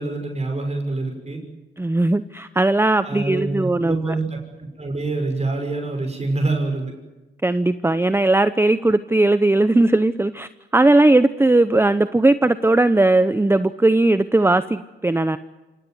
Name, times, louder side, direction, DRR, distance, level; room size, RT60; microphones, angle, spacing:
voice 1, 0.0-1.4 3.0-6.9, right 2 dB, 30° right, 3 dB, 6.2 m, -26 dB
voice 2, 1.8-4.1 7.4-15.4, right 2 dB, 10° right, 12 dB, 0.8 m, -18 dB
26.0 x 18.5 x 9.5 m, 1.1 s
cardioid pair, 70°, 21 cm